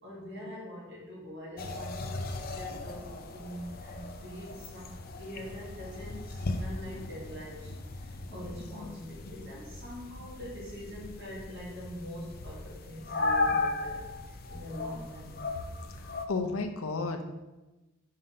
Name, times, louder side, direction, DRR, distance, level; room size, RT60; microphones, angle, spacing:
voice 1, 0.0-15.4, equal, 55° right, -7 dB, 1.8 m, -44 dB
sound 1, 1.6-16.3, left 3 dB, 45° left, 0.5 m, -37 dB
voice 2, 16.0-17.2, left 3 dB, 85° left, 5 dB, 0.7 m, -33 dB
5.6 x 3.8 x 5.5 m, 1.1 s
head